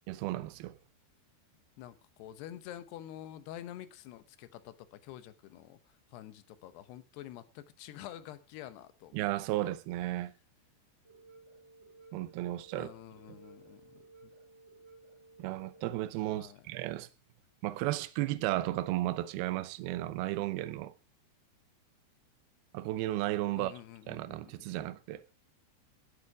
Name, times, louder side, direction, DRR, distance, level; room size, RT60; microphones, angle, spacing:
voice 1, 0.1-0.8 9.1-10.3 12.1-12.9 15.4-17.1 17.6-20.9 22.7-23.7 24.1-25.2, right 16 dB, 75° right, 2.4 m, -34 dB
voice 2, 1.8-9.2 9.5-9.7 12.8-14.3 16.3-16.6 23.5-24.9, left 12 dB, 75° left, 2.8 m, -48 dB
sound 1, 11.0-16.0, right 3 dB, 25° right, 6.3 m, -57 dB
17.5 x 8.2 x 4.8 m
omnidirectional pair, 5.3 m